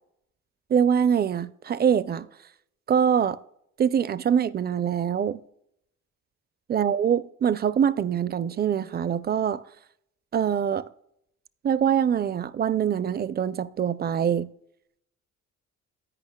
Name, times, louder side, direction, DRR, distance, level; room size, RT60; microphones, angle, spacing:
voice 1, 0.7-2.3 2.9-3.4 3.8-5.4 6.7-9.6 10.3-10.8 11.6-14.5, right 8 dB, 35° right, 0.4 m, -24 dB
11.0 x 8.9 x 2.2 m
cardioid pair, 90°, 30 cm